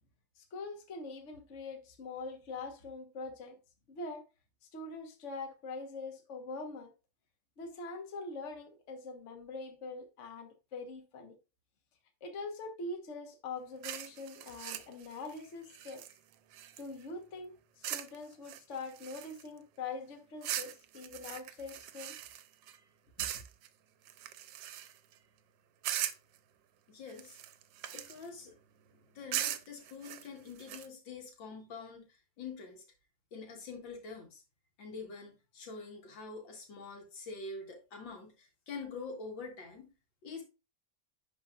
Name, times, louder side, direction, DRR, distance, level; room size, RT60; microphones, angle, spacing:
voice 1, 0.4-3.6 3.9-4.2 4.7-6.9 7.6-11.3 12.2-16.0 16.8-22.2, left 3 dB, 45° left, 1.3 m, -43 dB
sound 1, 13.8-17.1 17.8-18.2 18.4-19.6 20.4-22.8 23.2-23.7 24.1-25.1 25.8-26.4 27.1-28.3 29.3-30.9, right 12 dB, 85° right, 1.3 m, -40 dB
voice 2, 26.9-27.4 27.9-28.5 29.1-32.0 32.4-32.8 33.3-34.4 34.8-39.9 40.2-40.4, left 4 dB, 85° left, 2.3 m, -45 dB
10.5 x 4.3 x 2.4 m
omnidirectional pair, 2.0 m